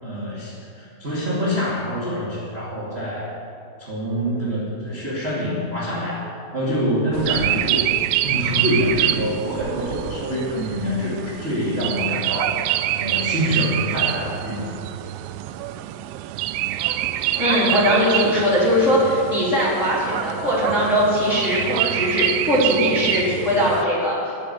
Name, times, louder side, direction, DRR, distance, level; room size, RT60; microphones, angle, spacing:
voice 1, 0.0-3.3 3.8-7.9 8.2-12.6 12.9-14.7, equal, 30° right, -8 dB, 1.2 m, -25 dB
sound 1, 7.1-23.8, right 13 dB, 90° right, 3.2 m, -26 dB
voice 2, 17.4-24.2, equal, 20° left, -8 dB, 2.5 m, -20 dB
11.5 x 9.9 x 8.0 m, 2.4 s
omnidirectional pair, 5.8 m